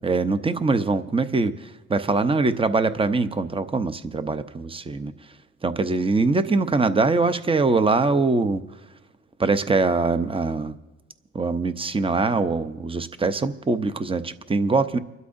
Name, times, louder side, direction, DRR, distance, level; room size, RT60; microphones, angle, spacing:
voice 1, 0.0-5.1 5.6-8.6 9.4-10.7 11.3-15.0, right 3 dB, 20° right, 11 dB, 0.7 m, -23 dB
30.0 x 12.0 x 2.6 m, 1.1 s
cardioid pair, 90°, 30 cm